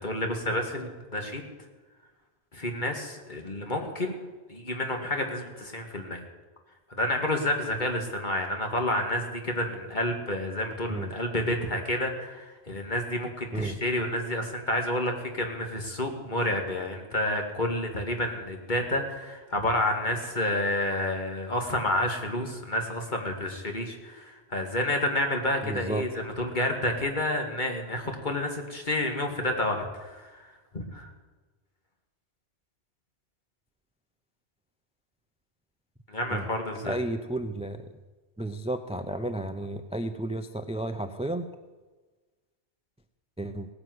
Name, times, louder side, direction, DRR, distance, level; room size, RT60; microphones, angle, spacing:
voice 1, 0.0-1.4 2.5-6.2 6.9-30.2 30.7-31.1 36.1-37.0, left 1 dB, 45° left, 3 dB, 2.3 m, -29 dB
voice 2, 25.6-26.0 36.3-36.4 36.8-37.8 38.4-41.5 43.4-43.7, right 1 dB, 5° right, 9 dB, 0.6 m, -32 dB
17.0 x 9.9 x 8.0 m, 1.3 s
omnidirectional pair, 1.1 m